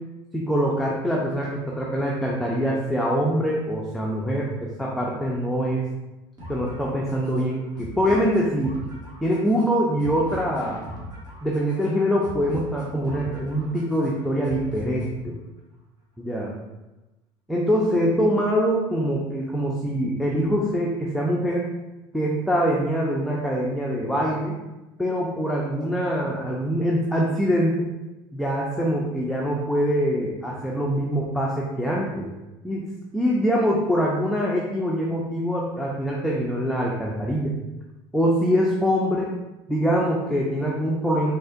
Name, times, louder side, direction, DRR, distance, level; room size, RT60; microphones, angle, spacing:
voice 1, 0.3-5.8 6.5-8.7 9.2-10.8 11.4-15.4 16.2-16.5 17.5-21.7 22.1-24.6 25.0-27.9 28.3-32.3 32.6-32.9 33.1-37.6 38.1-39.3 39.7-41.3, equal, ahead, -3 dB, 0.6 m, -24 dB
sound 1, 6.4-15.4, equal, 35° right, 1.3 m, -40 dB
4.1 x 2.9 x 2.4 m, 1.0 s
hypercardioid pair, 80°, 13 cm